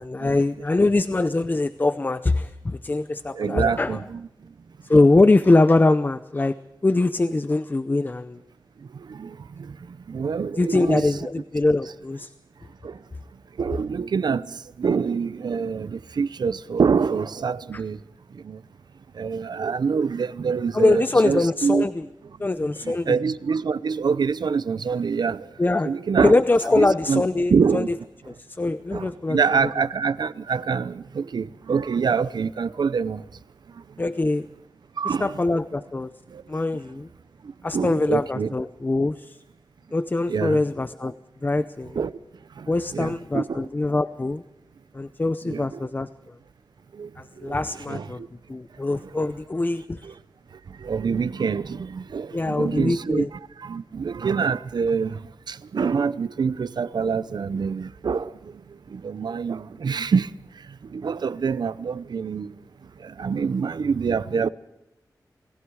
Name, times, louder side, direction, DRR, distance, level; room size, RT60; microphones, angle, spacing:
voice 1, 0.0-4.0 4.8-6.5 6.8-8.4 10.6-12.3 17.7-17.8 20.7-22.0 22.4-23.2 25.6-25.9 26.2-28.0 28.3-29.4 34.0-34.5 35.0-36.1 36.5-37.1 37.6-39.4 39.9-41.1 41.4-42.0 42.7-44.4 44.9-46.3 47.2-48.2 48.5-50.0 52.3-53.3, left 2 dB, 25° left, 0.6 m, -22 dB
voice 2, 3.4-4.2 9.2-9.3 10.1-11.3 13.6-14.4 14.8-18.0 18.5-18.6 19.2-21.8 23.1-25.4 25.8-26.3 26.8-27.2 27.5-27.9 28.9-33.2 35.0-35.3 37.7-38.5 40.3-40.6 42.0-42.1 42.9-43.4 45.5-45.6 47.0-47.1 47.9-48.0 50.9-53.2 53.7-55.1 55.5-58.3 59.0-60.3 60.9-62.5 63.2-64.5, right 5 dB, 85° right, 0.8 m, -25 dB
29.0 x 19.5 x 4.8 m
wide cardioid pair, 115°, 7 cm